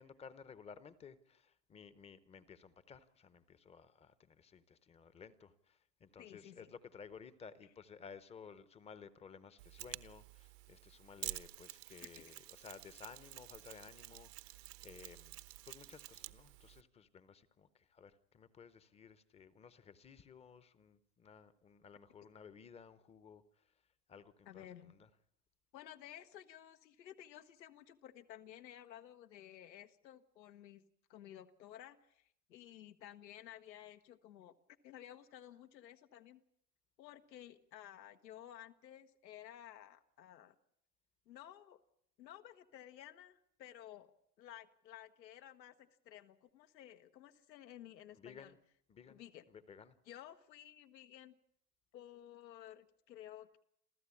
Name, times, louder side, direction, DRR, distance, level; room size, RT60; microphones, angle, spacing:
voice 1, 0.0-15.4 15.7-23.6 24.1-25.0 48.1-48.6 48.9-49.2 49.5-50.0, left 6 dB, 15° left, 15 dB, 0.8 m, -56 dB
voice 2, 6.2-6.7 12.0-12.4 24.5-25.0 25.7-30.8 31.1-34.6 34.8-36.4 37.0-40.5 41.3-41.8 42.2-44.1 44.4-48.5 49.1-49.5 50.0-51.3 51.9-53.6, left 11 dB, 90° left, 7 dB, 1.5 m, -54 dB
Mechanisms, 9.6-16.8, right 17 dB, 70° right, 1.1 m, -50 dB
28.0 x 14.5 x 8.5 m, 0.75 s
supercardioid pair, 140°, 50 cm